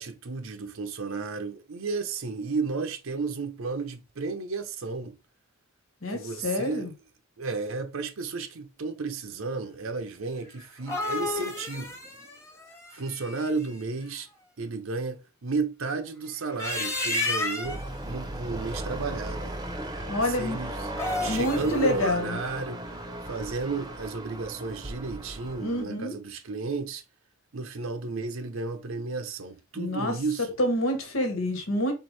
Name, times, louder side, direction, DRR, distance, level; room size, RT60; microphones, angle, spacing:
voice 1, 0.0-5.2 6.1-6.9 7.4-12.0 12.9-14.3 14.6-19.6 20.2-20.9 21.2-22.8 23.2-27.0 27.5-30.6, right 4 dB, 75° right, 0.7 m, -33 dB
voice 2, 6.0-6.9 20.1-20.6 21.3-22.4 25.6-26.2 29.8-30.2 30.6-31.9, left 1 dB, 80° left, 1.5 m, -27 dB
sound 1, 10.6-13.7 16.4-17.9 20.8-21.7, left 2 dB, 15° left, 1.2 m, -31 dB
sound 2, 17.6-25.8, right 1 dB, 20° right, 0.7 m, -36 dB
4.5 x 3.5 x 3.3 m
head